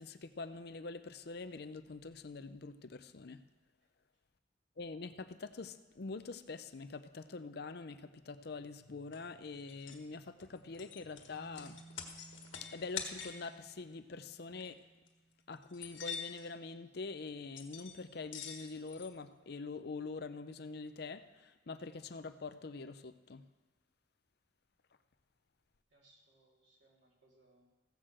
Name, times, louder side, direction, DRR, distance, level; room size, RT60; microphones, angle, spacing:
voice 1, 0.0-3.4 4.8-11.8 12.6-14.8 15.5-23.4, left 4 dB, 55° left, 11 dB, 0.6 m, -45 dB
voice 2, 3.8-4.2 25.9-27.7, right 2 dB, 70° right, -3 dB, 3.2 m, -69 dB
sound 1, 9.1-9.2 9.7-10.0 10.4-13.5 14.5-14.7 15.1-15.2 15.6-16.5 17.5-18.0 18.3-19.1, left 7 dB, 85° left, 1.5 m, -45 dB
sound 2, 11.3-15.6, right 3 dB, ahead, 1.6 m, -59 dB
15.0 x 6.6 x 7.5 m, 1.3 s
head